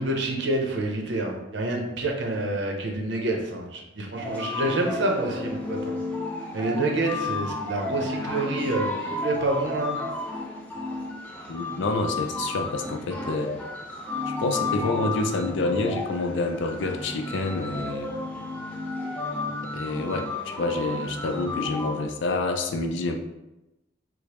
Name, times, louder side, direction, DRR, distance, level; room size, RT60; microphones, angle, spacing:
voice 1, 0.0-5.9 6.5-10.0, right 2 dB, 65° right, 1 dB, 0.6 m, -28 dB
sound 1, 4.1-22.0, left 2 dB, 5° left, 0.5 m, -32 dB
voice 2, 11.5-13.5 14.4-18.1 19.7-23.1, left 3 dB, 70° left, 5 dB, 0.4 m, -28 dB
4.8 x 2.0 x 2.9 m, 0.99 s
head